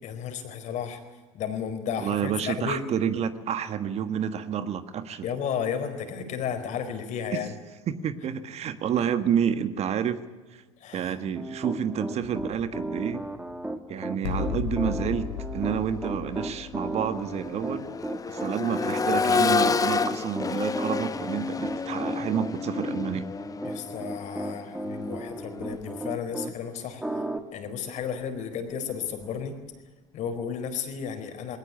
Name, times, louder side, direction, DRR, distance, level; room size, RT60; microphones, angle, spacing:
voice 1, 0.0-1.0 1.3-2.8 5.2-7.5 10.8-11.1 23.6-27.0 27.5-29.6 30.1-31.6, left 7 dB, 50° left, 8 dB, 4.4 m, -33 dB
voice 2, 2.0-5.3 7.3-7.4 7.9-10.2 10.5-10.6 10.9-13.2 13.9-17.9 18.3-23.3, right 8 dB, 45° right, 11 dB, 1.6 m, -29 dB
Piano, 11.4-26.5 27.0-27.4, right 1 dB, 5° right, 2.3 m, -35 dB
sound 1, 12.2-13.5 14.2-17.5 18.7-19.0, left 8 dB, 75° left, 3.5 m, -36 dB
Accelerating revving vroom, 15.7-15.9 16.3-26.2 27.9-28.0, left 5 dB, 25° left, 1.2 m, -30 dB
20.5 x 18.5 x 9.8 m, 1.3 s
hypercardioid pair, 75°, 15 cm